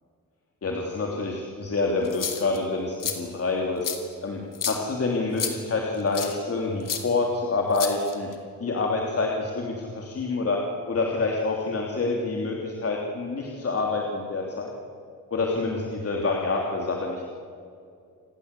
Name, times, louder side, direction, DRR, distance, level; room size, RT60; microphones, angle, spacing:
voice 1, 0.6-3.9 4.2-8.3 8.6-10.6 10.9-14.7 15.3-17.3, left 3 dB, 40° left, 0 dB, 3.1 m, -27 dB
sound 1, 2.0-2.6 3.0-3.2 3.8-4.0 4.5-4.8 5.4-5.5 6.1-6.3 6.9-7.0 7.7-8.3, left 8 dB, 65° left, 3.1 m, -30 dB
28.5 x 21.0 x 8.3 m, 2.4 s
cardioid pair, 120°, 35 cm